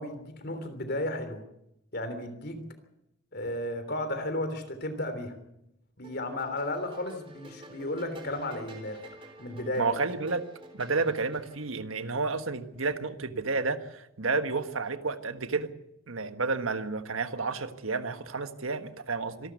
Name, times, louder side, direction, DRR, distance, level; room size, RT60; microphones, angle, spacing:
voice 1, 0.0-1.4 1.9-2.6 3.3-5.3 6.0-9.0 9.4-9.9, left 1 dB, 50° left, 9 dB, 3.3 m, -34 dB
sound 1, 6.0-11.7, right 1 dB, 25° right, 3.6 m, -50 dB
voice 2, 9.8-10.4 10.7-15.7 16.1-19.5, right 4 dB, 85° right, 9 dB, 1.5 m, -31 dB
25.5 x 12.5 x 8.3 m, 0.81 s
head